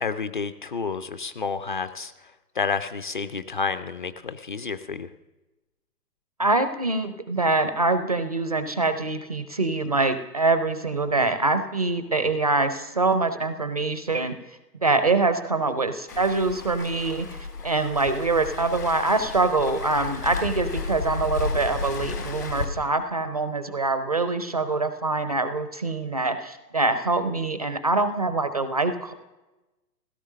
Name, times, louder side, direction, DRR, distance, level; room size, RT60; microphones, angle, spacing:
voice 1, 0.0-2.1 2.6-5.1, left 5 dB, 30° left, 11 dB, 0.5 m, -30 dB
voice 2, 6.4-29.1, right 3 dB, 25° right, 10 dB, 0.4 m, -24 dB
Waves surf, 16.1-22.6, left 4 dB, 75° left, 3.9 m, -33 dB
16.0 x 13.0 x 6.4 m, 1.1 s
figure-of-eight pair, 125°, 50 cm